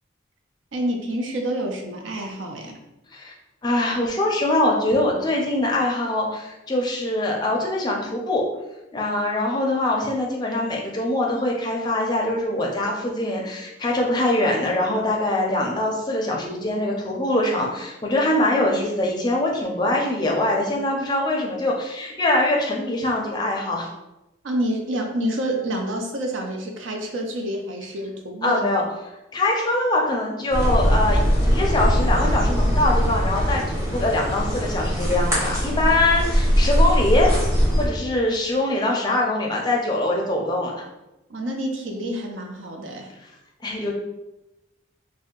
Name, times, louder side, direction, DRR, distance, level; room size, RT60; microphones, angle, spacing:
voice 1, 0.7-2.8 24.4-28.7 41.3-43.1, right 1 dB, 85° right, 2 dB, 0.6 m, -28 dB
voice 2, 3.6-8.4 8.9-23.9 28.4-28.8 29.3-37.4 37.8-40.8 43.6-43.9, left 1 dB, 20° left, -1 dB, 0.4 m, -23 dB
sound 1, 30.5-37.9, equal, 15° right, 0.9 m, -21 dB
2.6 x 2.1 x 3.7 m, 0.95 s
head